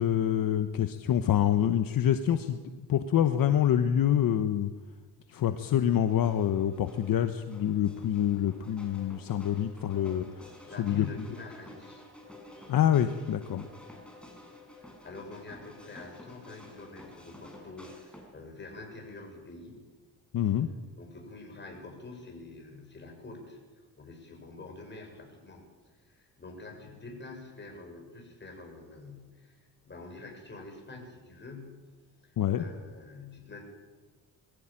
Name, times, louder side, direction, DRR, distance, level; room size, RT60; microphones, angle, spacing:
voice 1, 0.0-2.6 2.9-4.7 5.3-10.3 10.8-11.1 12.7-13.7 20.3-20.7 32.4-32.6, left 10 dB, 60° left, 8 dB, 1.2 m, -26 dB
sound 1, 5.8-18.4, left 1 dB, 5° left, 6.0 m, -51 dB
voice 2, 10.7-12.1 14.7-19.9 21.0-23.6 24.0-25.7 26.0-31.9 32.2-33.6, left 3 dB, 30° left, 2 dB, 7.0 m, -46 dB
22.5 x 15.5 x 9.0 m, 1.3 s
cardioid pair, 115°, 38 cm